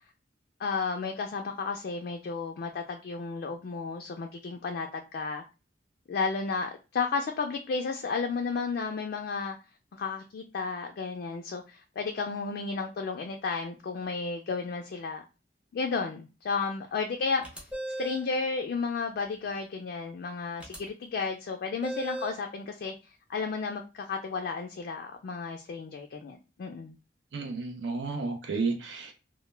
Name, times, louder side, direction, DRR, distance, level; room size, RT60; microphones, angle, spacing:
voice 1, 0.6-5.4 6.1-9.6 9.9-15.2 15.7-17.7 18.0-27.0, left 4 dB, 55° left, 0.3 m, -33 dB
sound 1, 17.4-18.3 20.6-20.8 21.8-22.4, right 1 dB, 5° right, 0.5 m, -36 dB
voice 2, 27.3-29.1, right 4 dB, 75° right, 0.5 m, -32 dB
2.1 x 2.1 x 3.1 m
head